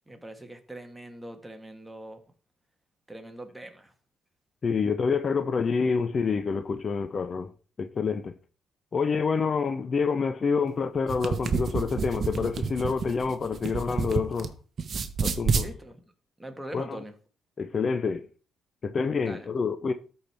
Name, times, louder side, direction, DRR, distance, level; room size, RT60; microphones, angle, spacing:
voice 1, 0.1-2.2 3.1-3.9 15.6-16.0 16.4-17.1 19.2-19.5, right 1 dB, 10° right, 1.5 m, -42 dB
voice 2, 4.6-7.5 7.8-8.3 8.9-14.5 15.2-15.7 16.7-17.0 17.6-18.3 18.8-19.9, left 5 dB, 40° left, 0.6 m, -27 dB
sound 1, 11.0-14.5 14.8-15.7, right 5 dB, 50° right, 0.9 m, -29 dB
13.0 x 4.4 x 3.4 m
cardioid pair, 90°, 0 cm